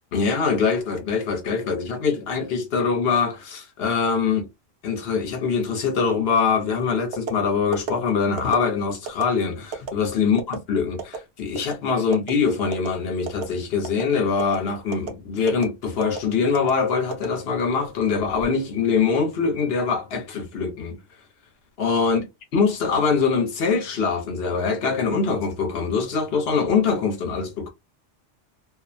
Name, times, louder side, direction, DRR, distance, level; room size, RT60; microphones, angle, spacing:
voice 1, 0.1-4.5 4.8-21.0 21.8-22.2 22.5-27.7, left 5 dB, 60° left, 0.8 m, -23 dB
sound 1, 7.1-7.4 7.7-7.9 8.4-8.6 9.1-9.2 9.7-9.9 10.4-10.6 11.0-11.2 11.6-11.8 12.1-12.3 12.7-12.9 13.3-13.5 13.8-14.0 14.4-14.6 14.9-15.1 15.5-15.7 16.0-16.2 16.5-16.7 17.1-17.8 18.2-18.5, right 5 dB, 65° right, 0.8 m, -30 dB
2.4 x 2.0 x 2.5 m
omnidirectional pair, 1.3 m